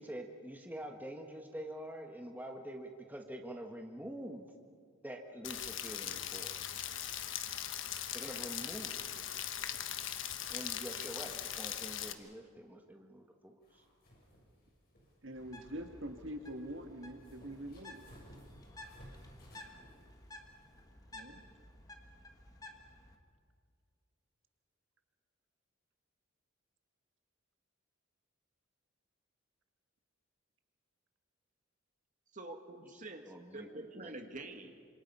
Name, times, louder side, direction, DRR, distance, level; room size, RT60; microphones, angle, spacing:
voice 1, 0.0-4.5 5.0-6.7 8.1-9.1 10.5-13.8 32.9-33.7 34.0-34.1, right 1 dB, 10° right, 2 dB, 1.5 m, -46 dB
Rain, 5.4-12.1, left 10 dB, 65° left, 1.2 m, -40 dB
sound 1, 13.6-20.8, equal, 45° left, 7.3 m, -59 dB
voice 2, 15.2-18.1 21.1-21.4, right 1 dB, 65° right, 6 dB, 1.6 m, -44 dB
Bird, 15.4-23.2, left 1 dB, 20° left, 1.7 m, -54 dB
voice 3, 32.3-33.2 33.5-34.8, right 2 dB, 40° right, 5 dB, 1.9 m, -46 dB
27.5 x 26.5 x 5.5 m, 2.1 s
head